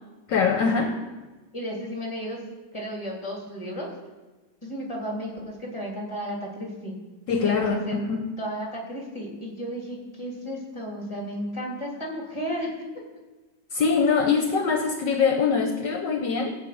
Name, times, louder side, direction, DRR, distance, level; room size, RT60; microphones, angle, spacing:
voice 1, 0.3-0.9 7.3-8.3 13.7-16.6, left 5 dB, 65° left, 3 dB, 1.6 m, -23 dB
voice 2, 1.5-2.4 2.7-3.9 4.6-6.9 7.3-8.1 8.4-12.9, equal, 15° left, -2 dB, 3.3 m, -33 dB
16.0 x 5.5 x 8.7 m, 1.2 s
omnidirectional pair, 2.2 m